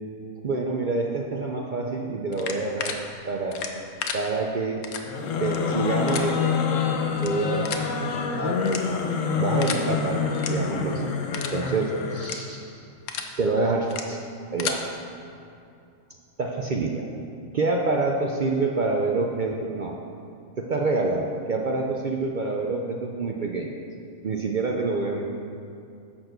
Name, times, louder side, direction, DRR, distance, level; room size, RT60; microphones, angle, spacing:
voice 1, 0.4-3.6 4.1-4.8 5.4-6.6 7.2-7.7 8.4-8.6 9.4-11.0 11.5-12.7 13.4-14.2 14.5-14.8 16.4-17.0 17.5-19.9 20.7-23.7 24.2-25.2, right 3 dB, 55° right, 0 dB, 0.5 m, -27 dB
sound 1, 2.3-2.9 3.5-4.2 4.8-5.0 5.4-5.6 6.1-6.2 7.1-7.3 7.6-7.9 8.6-9.1 9.6-9.8 10.3-10.5 10.9-11.0 11.3-11.6 12.2-12.4 12.8-13.3 13.8-14.0 14.4-14.8, left 7 dB, 85° left, 1.2 m, -32 dB
sound 2, 5.0-12.4, left 5 dB, 70° left, 1.1 m, -27 dB
10.5 x 4.4 x 6.6 m, 2.5 s
omnidirectional pair, 1.5 m